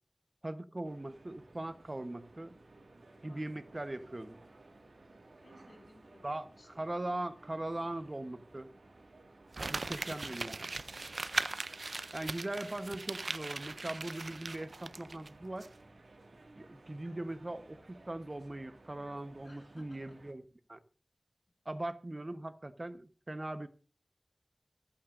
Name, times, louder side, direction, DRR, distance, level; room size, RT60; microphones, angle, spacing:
voice 1, 0.4-2.5 3.2-4.4 6.2-6.4 6.8-8.7 9.7-10.7 12.1-15.7 16.6-20.4 20.7-20.8 21.6-23.7, right 1 dB, 40° right, 1.0 m, -40 dB
sound 1, 0.8-20.3, right 2 dB, 90° right, 2.0 m, -58 dB
voice 2, 5.4-6.9 10.0-10.5 19.4-20.2, left 2 dB, 75° left, 2.6 m, -61 dB
Crumpling crinkling, 9.5-15.3 15.6-15.7, right 3 dB, 75° right, 0.5 m, -39 dB
25.0 x 9.0 x 2.6 m
wide cardioid pair, 50°, 0 cm